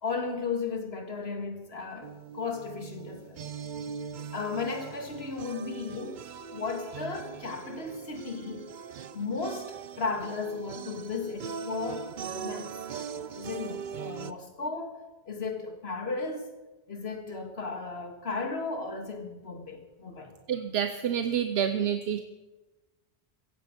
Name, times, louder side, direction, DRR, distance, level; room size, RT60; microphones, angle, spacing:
voice 1, 0.0-3.4 4.3-6.2 6.5-8.7 9.1-12.7 13.3-16.5 16.9-20.3, left 4 dB, 85° left, 2.1 m, -35 dB
sound 1, 2.0-14.3, right 7 dB, 55° right, 0.7 m, -41 dB
voice 2, 20.5-22.2, right 8 dB, 85° right, 1.0 m, -28 dB
16.5 x 15.0 x 5.1 m
omnidirectional pair, 1.0 m